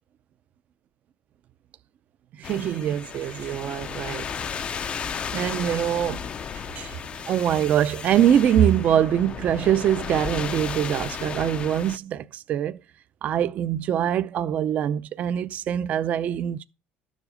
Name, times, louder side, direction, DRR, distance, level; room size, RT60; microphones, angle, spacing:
sound 1, 2.4-12.0, left 7 dB, 30° left, 0.5 m, -34 dB
voice 1, 2.4-4.3 5.3-6.2 6.5-7.0 7.3-12.8 13.2-16.6, right 10 dB, 40° right, 0.5 m, -23 dB
12.5 x 7.3 x 5.1 m
cardioid pair, 170°, 4 cm